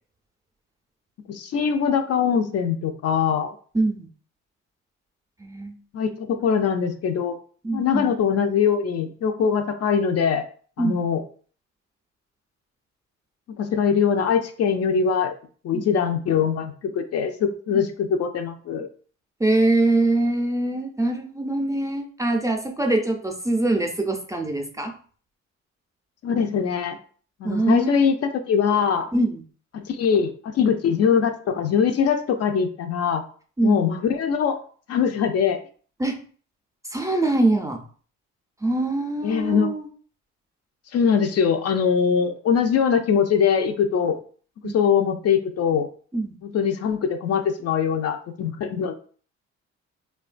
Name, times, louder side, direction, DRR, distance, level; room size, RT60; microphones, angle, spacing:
voice 1, 1.3-3.5 5.9-7.4 7.7-10.5 10.8-11.2 13.6-15.3 15.6-18.9 26.2-27.0 27.4-29.1 29.7-33.2 33.6-34.6 34.9-35.6 39.2-39.7 40.9-44.2 44.6-45.9 46.4-48.9, left 7 dB, 55° left, 7 dB, 0.4 m, -22 dB
voice 2, 3.7-4.1 5.4-5.8 7.6-8.1 10.8-11.0 15.7-15.9 19.4-24.9 27.4-28.1 29.1-29.4 33.6-33.8 36.0-36.2 36.9-37.8 38.6-39.9 44.6-44.8 46.1-46.4, right 2 dB, 10° right, 2 dB, 0.4 m, -23 dB
3.0 x 2.2 x 2.4 m, 0.43 s
cardioid pair, 90°, 30 cm